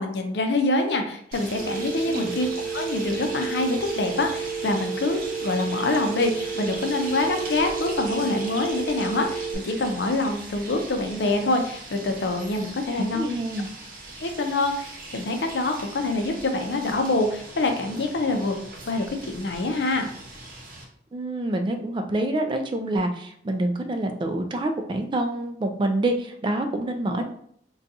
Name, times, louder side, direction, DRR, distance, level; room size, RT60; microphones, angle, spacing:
voice 1, 0.0-2.5 2.7-13.4 14.2-20.1, left 2 dB, 75° left, 5 dB, 0.5 m, -25 dB
sound 1, 1.3-20.8, right 2 dB, 50° right, 0.7 m, -40 dB
Telephone, 1.6-9.5, right 5 dB, 15° left, 1.0 m, -31 dB
voice 2, 13.0-13.7 21.1-27.2, right 1 dB, 25° right, 5 dB, 0.3 m, -27 dB
3.9 x 2.3 x 2.7 m, 0.65 s
head